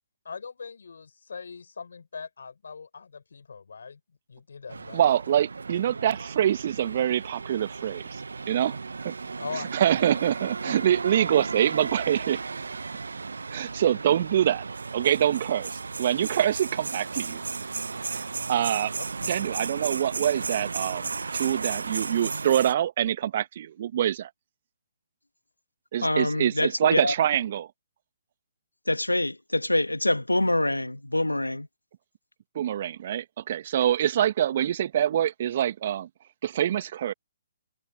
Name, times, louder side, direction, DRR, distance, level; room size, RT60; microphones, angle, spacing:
voice 1, 0.2-4.0 4.3-5.1 9.4-9.7 10.6-10.7, left 5 dB, 65° left, 5.2 m, -40 dB
sound 1, 4.7-22.7, right 4 dB, 70° right, 1.2 m, -35 dB
voice 2, 4.9-9.1 9.5-12.4 13.5-14.6 14.9-17.4 18.1-18.9 19.3-24.3 25.9-27.7 32.5-36.1 36.4-37.1, right 10 dB, 45° right, 1.3 m, -25 dB
voice 3, 26.0-27.1 28.9-31.7, left 1 dB, 90° left, 1.5 m, -25 dB
figure-of-eight pair, 135°, 0 cm